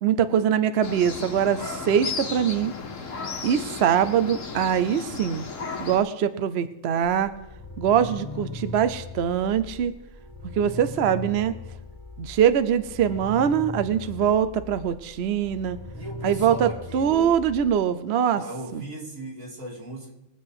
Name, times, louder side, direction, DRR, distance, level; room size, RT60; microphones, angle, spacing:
voice 1, 0.0-2.7 3.4-5.5 5.8-7.3 7.8-9.9 10.6-11.5 12.2-15.8 16.2-18.4 18.7-18.8, right 8 dB, 60° right, 12 dB, 0.8 m, -23 dB
sound 1, 0.8-6.0, left 5 dB, 75° left, 1.6 m, -34 dB
sound 2, 7.0-17.7, left 2 dB, 15° left, 1.1 m, -39 dB
voice 2, 15.9-17.3 18.3-20.1, right 1 dB, 85° right, -2 dB, 3.2 m, -37 dB
21.5 x 7.9 x 4.8 m, 0.91 s
omnidirectional pair, 1.4 m